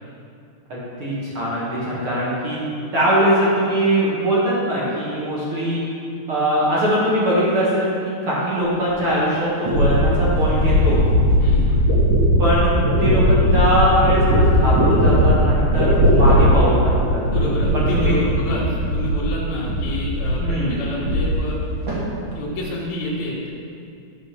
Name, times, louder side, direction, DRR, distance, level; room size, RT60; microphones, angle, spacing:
voice 1, 0.7-2.6 2.9-5.8 6.3-7.9 8.2-11.0 12.4-12.7 13.0-17.2 17.7-18.1 20.4-20.8, equal, 55° right, -8 dB, 1.5 m, -21 dB
sound 1, 8.9-9.0 9.6-19.3 19.6-20.5 20.8-21.6 21.9-22.4, equal, 40° right, 1.8 m, -18 dB
voice 2, 11.4-11.9 17.3-21.6 22.3-23.5, left 1 dB, 65° left, -8 dB, 2.9 m, -28 dB
12.5 x 5.2 x 6.0 m, 2.5 s
omnidirectional pair, 5.3 m